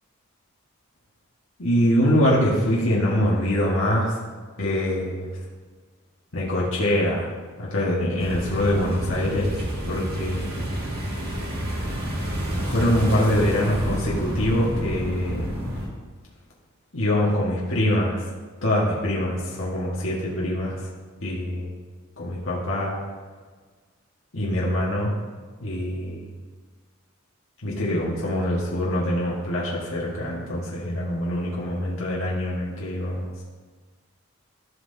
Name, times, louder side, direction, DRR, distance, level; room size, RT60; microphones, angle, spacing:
voice 1, 1.6-4.2 4.6-5.3 6.3-7.3 7.6-10.6 12.6-15.5 16.9-18.2 18.6-20.9 21.2-21.7 22.2-23.0 24.3-25.1 25.6-26.2 27.6-33.3, left 1 dB, 65° left, -5 dB, 1.5 m, -24 dB
sound 1, 8.2-15.9, equal, 45° right, 1.8 m, -29 dB
14.5 x 5.7 x 2.8 m, 1.5 s
head